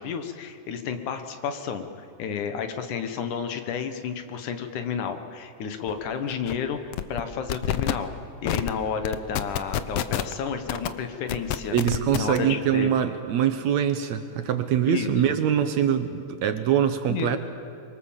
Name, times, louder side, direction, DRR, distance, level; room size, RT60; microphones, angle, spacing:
voice 1, 0.0-1.9 2.2-8.1 8.4-11.8 12.1-12.9 14.9-15.3 17.1-17.4, left 7 dB, 70° left, 7 dB, 2.8 m, -31 dB
sound 1, 5.9-6.0 6.3-6.6 6.9-7.2 7.5-7.9 8.5-8.7 9.0-10.3 10.7-10.9 11.3-12.4, left 11 dB, 90° left, 1.2 m, -27 dB
voice 2, 11.7-17.4, right 9 dB, 70° right, 9 dB, 2.0 m, -23 dB
25.0 x 23.5 x 7.3 m, 2.4 s
omnidirectional pair, 3.8 m